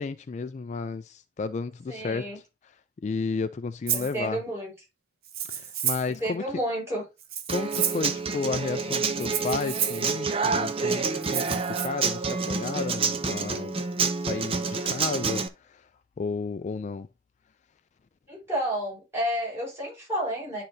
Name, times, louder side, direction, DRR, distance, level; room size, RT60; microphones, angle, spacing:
voice 1, 0.0-2.3 3.0-4.4 5.5-6.4 7.5-13.8 14.1-15.9 16.2-17.1, left 4 dB, 40° left, 0.3 m, -32 dB
voice 2, 1.9-2.4 3.9-4.7 6.1-7.0 18.3-20.6, equal, 15° right, 4.9 m, -31 dB
Rattle (instrument), 3.9-4.1 5.2-6.2 7.2-8.1 9.2-10.1 11.2-11.9, right 9 dB, 55° right, 0.9 m, -30 dB
Human voice / Acoustic guitar, 7.5-15.5, right 4 dB, 30° right, 0.6 m, -28 dB
11.5 x 3.9 x 2.7 m
head